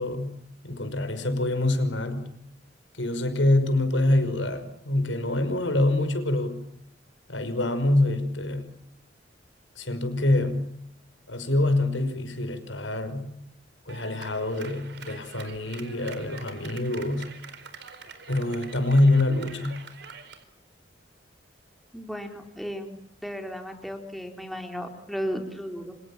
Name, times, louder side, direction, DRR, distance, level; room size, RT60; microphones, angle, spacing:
voice 1, 0.0-2.3 3.0-6.6 7.3-8.7 9.8-10.7 11.3-13.3 13.9-17.3 18.3-19.9, left 1 dB, 80° left, 9 dB, 5.8 m, -25 dB
Clapping, 13.9-20.4, right 5 dB, 65° right, 4.4 m, -45 dB
voice 2, 21.9-23.0 23.2-25.9, equal, ahead, 4 dB, 4.0 m, -34 dB
29.5 x 27.0 x 7.5 m, 0.74 s
head